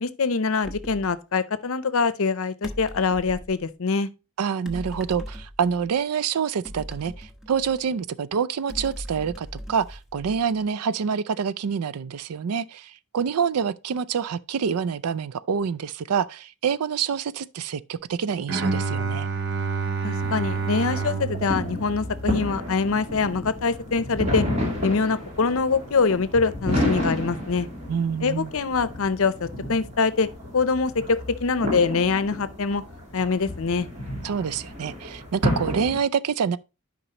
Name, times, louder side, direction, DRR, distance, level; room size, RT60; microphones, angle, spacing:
voice 1, 0.0-4.1 20.0-24.4 24.8-27.7 28.2-30.3 30.5-32.8 33.1-33.9, left 4 dB, 65° left, 0.6 m, -24 dB
sound 1, 0.6-1.1 2.6-3.6 4.6-5.9 6.6-8.0 8.7-10.6, equal, ahead, 0.9 m, -39 dB
voice 2, 4.4-19.3 27.9-28.5 34.2-36.6, right 6 dB, 85° right, 0.4 m, -27 dB
Bowed string instrument, 18.5-22.6, right 5 dB, 55° right, 0.9 m, -28 dB
sound 2, 20.2-36.0, left 1 dB, 30° right, 2.7 m, -31 dB
11.0 x 5.2 x 2.9 m
head